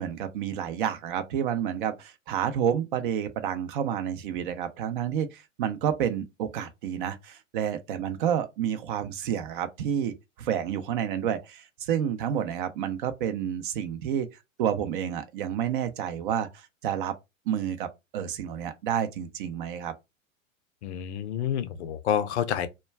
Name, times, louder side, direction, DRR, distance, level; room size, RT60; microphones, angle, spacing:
voice 1, 0.0-14.3 14.6-17.1 17.5-19.9, right 9 dB, 40° right, 0.5 m, -29 dB
voice 2, 20.8-22.7, left 9 dB, 55° left, 0.5 m, -28 dB
2.2 x 2.2 x 3.2 m
figure-of-eight pair, 105°, 40 cm